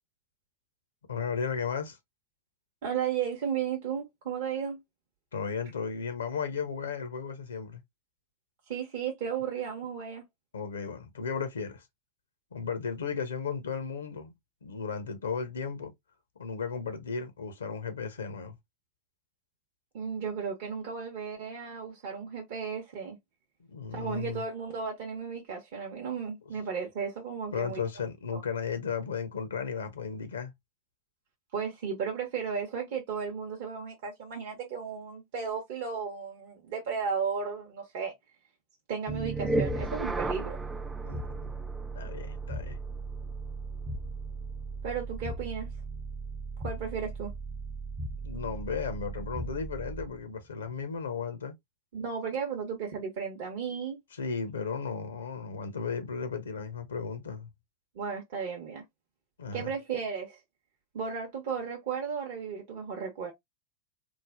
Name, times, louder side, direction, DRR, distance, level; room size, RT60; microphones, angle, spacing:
voice 1, 1.1-2.0 5.3-7.8 10.5-11.8 12.5-14.3 14.6-15.9 16.4-18.5 23.7-24.4 27.5-30.5 41.0-41.5 42.0-42.8 48.2-51.5 54.2-57.5 59.4-59.7, left 6 dB, 70° left, 0.5 m, -35 dB
voice 2, 2.8-4.8 8.7-10.2 19.9-23.2 23.9-27.8 28.3-28.4 31.5-38.1 38.9-40.6 44.8-45.7 46.6-47.3 51.9-54.0 58.0-58.8 59.5-60.4 60.9-63.3, right 6 dB, 50° right, 0.6 m, -34 dB
sound 1, 39.1-50.2, right 2 dB, 10° right, 0.3 m, -35 dB
3.1 x 2.0 x 2.3 m
figure-of-eight pair, 90°, 0 cm